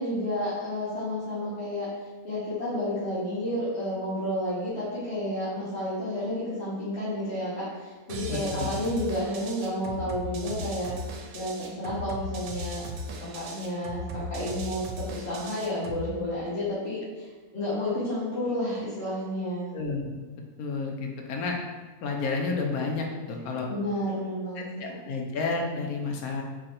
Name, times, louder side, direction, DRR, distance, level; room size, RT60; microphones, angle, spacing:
voice 1, 0.0-1.9 2.2-10.9 11.3-19.7 23.7-24.6, left 1 dB, 50° left, -11 dB, 1.3 m, -31 dB
sound 1, 8.1-16.1, right 1 dB, 75° right, 1.0 m, -37 dB
voice 2, 8.3-8.7 19.7-20.1 20.6-21.6 22.0-23.7 24.6-26.4, left 4 dB, 90° left, 1 dB, 1.2 m, -31 dB
3.8 x 3.1 x 4.2 m, 1.3 s
omnidirectional pair, 1.5 m